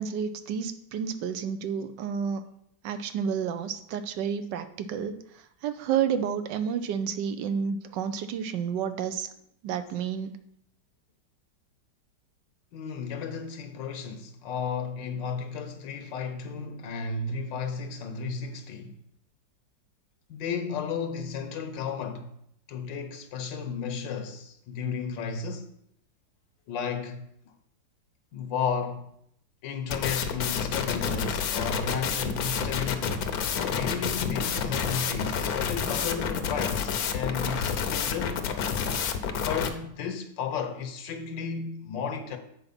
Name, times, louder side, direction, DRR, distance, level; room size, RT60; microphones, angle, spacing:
voice 1, 0.0-2.4 2.8-5.2 5.6-9.3 9.6-10.4, right 7 dB, 80° right, 1.2 m, -30 dB
voice 2, 12.7-18.9 20.3-22.3 22.7-25.7 26.7-27.5 28.3-29.1 29.6-33.3 33.6-38.5 39.4-42.4, left 6 dB, 80° left, 1.5 m, -33 dB
sound 1, 29.9-39.7, left 7 dB, 65° left, 1.1 m, -29 dB
8.0 x 4.4 x 5.7 m
omnidirectional pair, 2.0 m